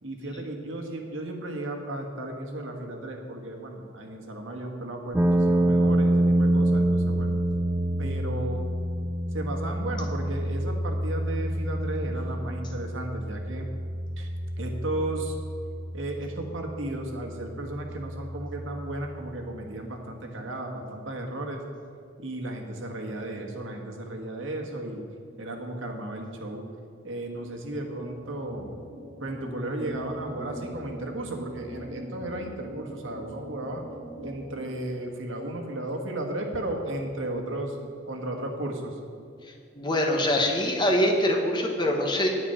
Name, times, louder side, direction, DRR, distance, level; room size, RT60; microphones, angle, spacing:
voice 1, 0.0-7.3 8.0-8.6 9.3-13.7 14.2-14.3 14.6-15.4 15.9-21.6 22.2-25.0 25.4-26.7 27.0-28.7 29.2-33.8 34.2-37.8 38.1-39.0, right 1 dB, 80° right, 2 dB, 1.5 m, -34 dB
sound 1, 5.1-19.2, right 1 dB, 10° right, 0.4 m, -27 dB
sound 2, 27.3-34.6, right 1 dB, 40° right, 2.8 m, -42 dB
voice 2, 39.7-42.3, left 1 dB, 25° left, 1 dB, 1.2 m, -24 dB
9.7 x 9.0 x 5.6 m, 2.4 s
head